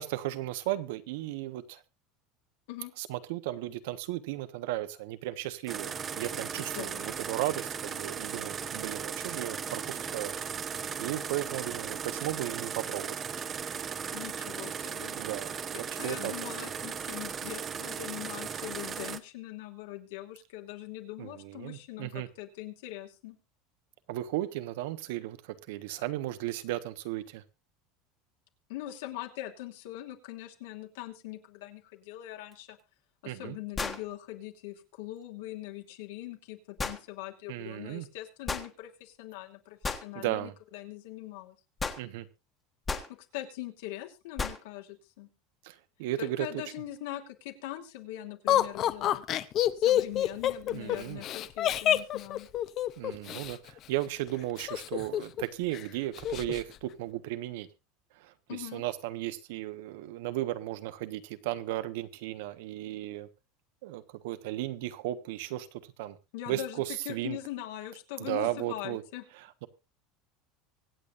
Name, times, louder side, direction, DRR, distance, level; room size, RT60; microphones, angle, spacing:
voice 1, 0.0-1.8 3.0-10.3 11.0-13.2 15.2-15.5 16.0-16.3 21.2-22.3 24.1-27.4 33.2-33.6 37.5-38.1 40.1-40.5 42.0-42.3 45.6-46.6 50.7-51.2 53.0-57.7 58.2-63.3 63.8-66.2 66.5-67.4 68.2-69.0 69.4-69.7, right 15 dB, 75° right, 1.3 m, -35 dB
sound 1, 5.7-19.2, right 7 dB, 25° right, 0.9 m, -37 dB
voice 2, 6.7-7.2 14.1-15.2 16.0-23.4 28.7-32.8 33.2-41.6 43.1-45.3 46.2-49.2 49.7-52.5 58.5-58.8 66.3-69.2, left 14 dB, 80° left, 2.8 m, -42 dB
sound 2, 32.5-32.6 33.8-34.1 36.8-37.0 38.5-38.7 39.8-40.1 41.8-42.0 42.9-43.1 44.4-44.6, left 4 dB, 15° left, 1.4 m, -33 dB
Laughter, 48.5-53.5 54.6-55.4 55.7-55.8 56.2-56.6, left 12 dB, 35° left, 0.8 m, -27 dB
24.5 x 8.6 x 2.6 m
cardioid pair, 165°, 0 cm